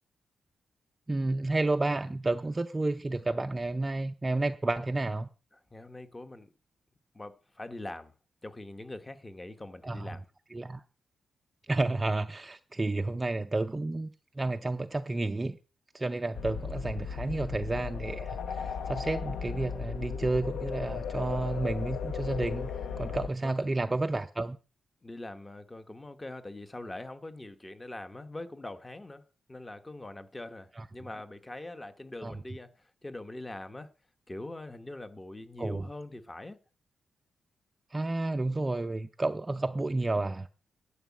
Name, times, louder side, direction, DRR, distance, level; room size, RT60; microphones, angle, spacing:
voice 1, 1.1-5.3 9.8-10.1 10.5-10.8 11.7-15.6 15.9-22.7 23.0-24.6 30.8-30.9 32.2-32.3 35.6-35.8 37.9-40.5, right 2 dB, 15° right, 0.5 m, -31 dB
voice 2, 5.5-6.5 7.1-8.1 8.4-10.2 23.4-23.5 25.0-29.2 29.5-33.9 34.3-36.6, left 2 dB, 15° left, 1.0 m, -43 dB
sound 1, 16.3-23.3, left 6 dB, 85° left, 0.9 m, -36 dB
11.0 x 5.7 x 8.3 m
wide cardioid pair, 150°, 0 cm